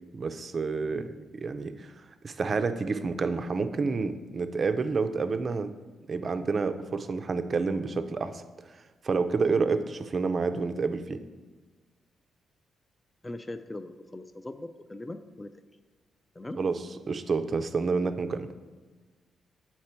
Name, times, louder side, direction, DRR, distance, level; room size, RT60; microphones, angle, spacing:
voice 1, 0.1-1.9 2.2-5.7 6.1-8.8 9.0-11.2 16.6-18.5, right 4 dB, 40° right, 10 dB, 0.4 m, -29 dB
voice 2, 13.2-15.5 16.4-16.6, left 2 dB, 20° left, 9 dB, 0.4 m, -40 dB
8.1 x 4.4 x 4.3 m, 1.4 s
cardioid pair, 90°, 0 cm